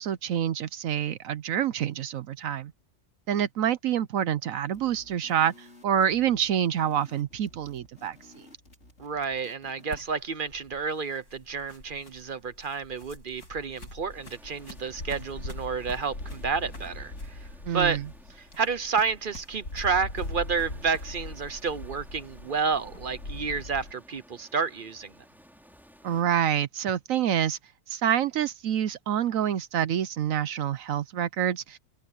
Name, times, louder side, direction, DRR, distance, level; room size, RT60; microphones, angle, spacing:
voice 1, 0.0-2.7 3.3-8.4 17.6-18.1 26.0-27.6 27.9-31.8, right 9 dB, 65° right, 1.0 m, -27 dB
sound 1, 4.7-10.2, left 2 dB, 45° left, 5.7 m, -55 dB
voice 2, 9.0-17.5 17.7-18.0 18.4-25.1, right 5 dB, 45° right, 0.8 m, -30 dB
sound 2, 9.9-23.9, left 2 dB, 85° left, 7.3 m, -41 dB
sound 3, 14.1-26.2, equal, ahead, 2.7 m, -55 dB
omnidirectional pair, 1.6 m